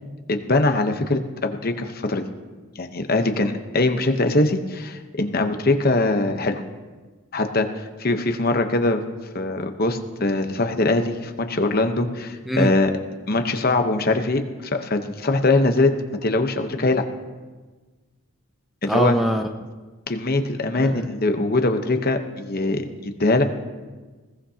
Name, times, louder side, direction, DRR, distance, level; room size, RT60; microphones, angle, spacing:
voice 1, 0.3-2.3 2.8-6.6 7.3-7.7 8.0-9.0 9.3-12.9 13.3-15.9 16.2-17.0 18.8-19.2 20.1-23.4, left 2 dB, 40° left, 6 dB, 1.0 m, -22 dB
voice 2, 18.9-19.5 20.8-21.1, equal, ahead, 4 dB, 0.4 m, -22 dB
21.0 x 16.5 x 2.9 m, 1.3 s
head